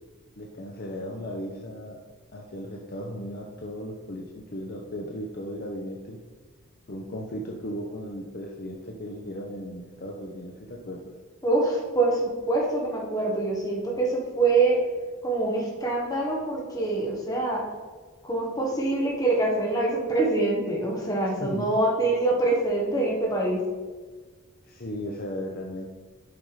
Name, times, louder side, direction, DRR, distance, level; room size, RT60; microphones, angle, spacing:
voice 1, 0.4-2.0 2.3-6.2 6.9-11.1 21.4-21.7 24.6-25.9, equal, 40° left, 1 dB, 0.7 m, -36 dB
voice 2, 11.4-14.8 15.2-17.6 18.2-23.6, right 2 dB, 15° left, -2 dB, 1.5 m, -25 dB
7.7 x 5.4 x 4.8 m, 1.4 s
head